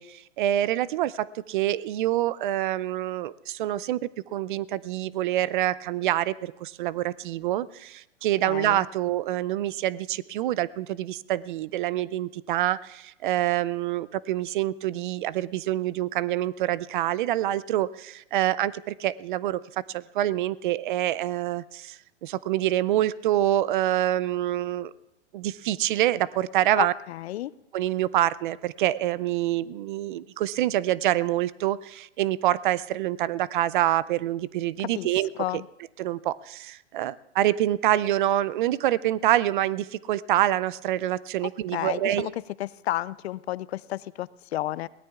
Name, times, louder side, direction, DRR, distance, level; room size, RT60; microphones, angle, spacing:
voice 1, 0.0-19.6 19.9-24.9 25.3-26.9 27.7-35.3 36.0-42.3, right 13 dB, 45° right, 20 dB, 0.4 m, -26 dB
voice 2, 8.4-8.8 26.8-27.5 34.8-35.1 35.4-35.6 41.4-42.3 42.6-44.9, left 14 dB, 65° left, 20 dB, 0.5 m, -32 dB
22.5 x 17.0 x 2.4 m, 0.90 s
hypercardioid pair, 125°, 35 cm